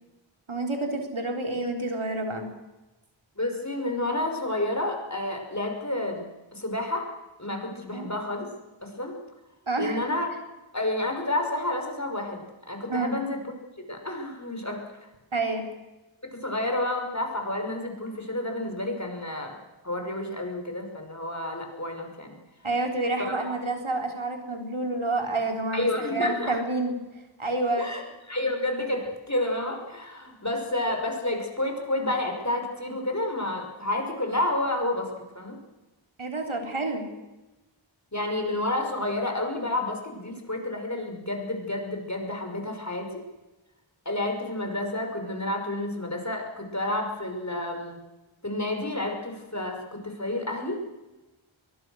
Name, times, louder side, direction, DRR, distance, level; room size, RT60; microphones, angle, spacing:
voice 1, 0.5-2.5 7.9-8.1 9.7-10.0 12.9-13.1 15.3-15.6 22.6-27.0 27.4-27.9 36.2-37.1, right 2 dB, 80° right, 3 dB, 3.9 m, -28 dB
voice 2, 3.4-6.2 6.5-7.1 7.4-8.5 8.8-9.2 9.8-10.3 10.7-13.4 13.9-14.8 16.4-19.5 19.8-22.4 25.7-26.6 27.8-28.0 28.3-35.1 35.3-35.6 38.1-43.2 44.1-48.0 48.4-50.8, left 1 dB, 35° left, 3 dB, 5.7 m, -30 dB
23.0 x 21.5 x 6.4 m, 1.1 s
wide cardioid pair, 40°, 48 cm